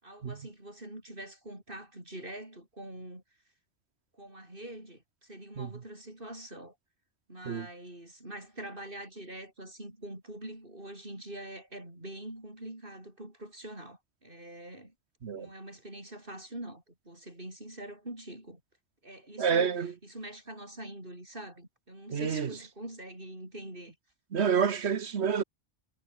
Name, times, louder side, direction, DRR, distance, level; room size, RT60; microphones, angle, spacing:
voice 1, 0.0-3.2 4.1-6.8 7.3-14.9 15.3-18.6 19.0-24.0, right 1 dB, 55° right, 7.7 m, -44 dB
voice 2, 19.4-19.9 22.1-22.5 24.3-25.4, right 7 dB, 85° right, 1.5 m, -28 dB
omnidirectional pair, 1.1 m